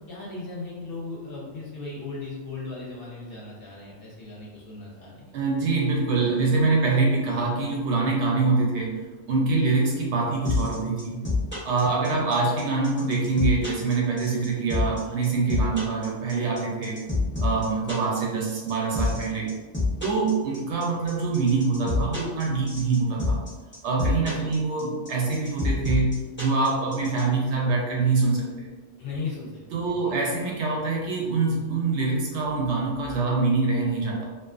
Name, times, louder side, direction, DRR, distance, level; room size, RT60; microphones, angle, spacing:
voice 1, 0.1-5.3 11.9-12.2 15.7-15.9 24.4-24.5 29.0-30.1, left 3 dB, 55° left, -5 dB, 0.7 m, -37 dB
voice 2, 5.3-9.0 9.3-11.2 11.6-17.0 17.4-19.5 20.0-23.4 23.8-28.7 29.7-34.3, right 3 dB, 70° right, -2 dB, 0.8 m, -25 dB
sound 1, 10.4-27.2, left 3 dB, 10° left, 0.6 m, -27 dB
2.4 x 2.3 x 2.4 m, 1.3 s
omnidirectional pair, 1.3 m